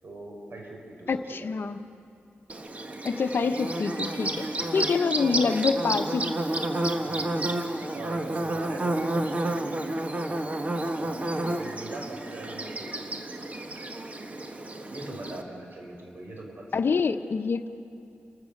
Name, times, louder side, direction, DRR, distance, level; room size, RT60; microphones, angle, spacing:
voice 1, 0.0-1.5 2.9-3.3 4.6-4.8 5.2-5.3 7.0-7.3 7.9-9.9 10.2-10.6 11.0-13.1 14.9-17.0, right 2 dB, 65° right, 0 dB, 5.5 m, -42 dB
voice 2, 1.1-1.8 3.0-6.4 16.7-17.7, left 5 dB, 65° left, 9 dB, 0.9 m, -26 dB
Bird / Buzz, 2.5-15.4, right 1 dB, 35° right, 1.4 m, -30 dB
29.0 x 15.5 x 6.6 m, 2.6 s
wide cardioid pair, 100°, 4 cm